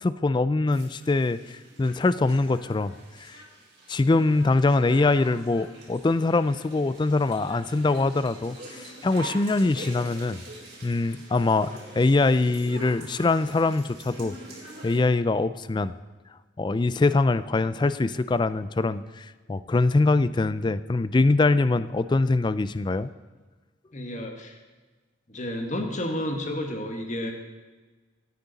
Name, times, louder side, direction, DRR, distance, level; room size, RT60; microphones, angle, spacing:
voice 1, 0.0-3.4 3.9-10.4 10.8-14.4 14.8-15.9 16.6-23.1, left 3 dB, 25° left, 15 dB, 0.3 m, -23 dB
sound 1, 0.7-15.0, right 2 dB, 55° right, 4.8 m, -44 dB
voice 2, 23.9-24.6 25.3-27.3, left 1 dB, 40° left, 3 dB, 1.5 m, -31 dB
17.0 x 9.4 x 4.1 m, 1.3 s
head